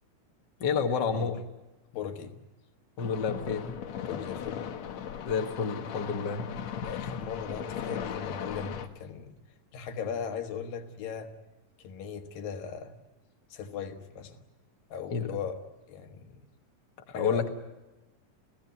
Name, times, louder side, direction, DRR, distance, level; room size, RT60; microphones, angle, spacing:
voice 1, 0.6-1.3 3.0-3.7 5.2-6.5 15.1-15.4 17.1-17.5, left 6 dB, 40° left, 4 dB, 1.9 m, -29 dB
voice 2, 1.9-2.3 4.1-4.6 6.9-9.3 9.7-11.3 11.8-12.9 13.5-14.4 14.9-15.6 15.9-16.4 17.1-17.4, left 7 dB, 80° left, 6 dB, 3.3 m, -38 dB
sound 1, 3.0-8.9, left 8 dB, 60° left, 2.2 m, -37 dB
29.5 x 16.0 x 9.5 m, 1.0 s
omnidirectional pair, 4.0 m